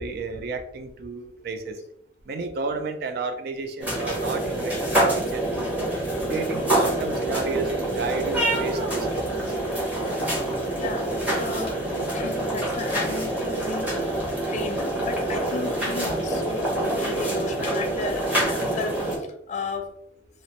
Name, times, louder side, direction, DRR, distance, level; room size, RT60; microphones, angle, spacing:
voice 1, 0.0-1.8 2.3-5.9 6.3-9.6, right 3 dB, 60° right, 7 dB, 0.3 m, -32 dB
sound 1, 3.8-19.2, right 1 dB, 10° right, 0.8 m, -26 dB
voice 2, 10.7-11.7 12.1-14.2 14.5-19.0 19.5-19.9, left 4 dB, 40° left, 5 dB, 0.4 m, -34 dB
2.9 x 2.0 x 2.8 m, 0.72 s
head